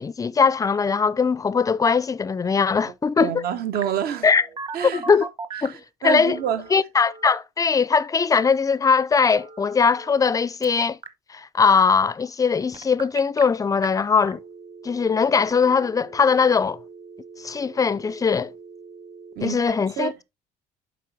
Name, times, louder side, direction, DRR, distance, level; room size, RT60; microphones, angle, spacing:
voice 1, 0.0-3.4 4.2-4.4 4.9-5.3 5.6-5.7 6.0-6.4 6.7-11.0 11.3-14.4 14.8-16.8 17.4-18.5 19.4-20.1, left 5 dB, 20° left, 0.4 m, -20 dB
voice 2, 3.2-4.3 4.7-5.1 5.6-6.6 19.3-19.6 20.0-20.1, right 9 dB, 70° right, 1.3 m, -28 dB
Telephone, 3.7-5.8 6.3-7.4 9.4-10.4 10.6-11.1 12.7-13.4 13.8-13.9 14.3-19.3, right 5 dB, 30° right, 1.2 m, -39 dB
7.6 x 5.2 x 3.4 m
cardioid pair, 110°, 17 cm